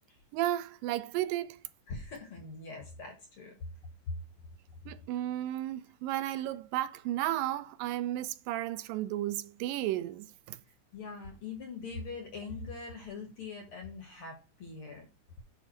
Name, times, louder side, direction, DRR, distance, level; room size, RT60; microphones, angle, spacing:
voice 1, 0.3-1.6 4.9-10.6, right 14 dB, 85° right, 2.3 m, -33 dB
voice 2, 1.9-3.5 10.9-15.1, left 4 dB, 55° left, 1.8 m, -42 dB
9.2 x 3.4 x 4.5 m
omnidirectional pair, 3.9 m